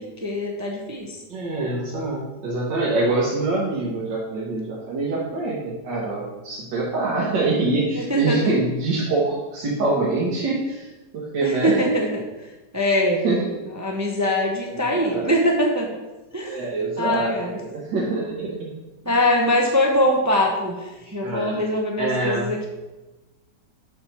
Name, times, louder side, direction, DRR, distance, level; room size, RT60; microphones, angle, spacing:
voice 1, 0.0-1.2 7.9-8.4 11.4-12.2 12.7-13.2 13.8-15.9 16.3-16.6 17.0-17.6 19.1-22.7, left 1 dB, 25° right, 0 dB, 0.3 m, -22 dB
voice 2, 1.3-10.9 11.1-11.9 13.2-13.6 14.8-15.3 16.4-18.7 19.0-19.2 21.2-21.6 22.0-22.5, right 2 dB, 80° right, -5 dB, 1.9 m, -25 dB
7.3 x 4.7 x 5.7 m, 1.1 s
omnidirectional pair, 1.9 m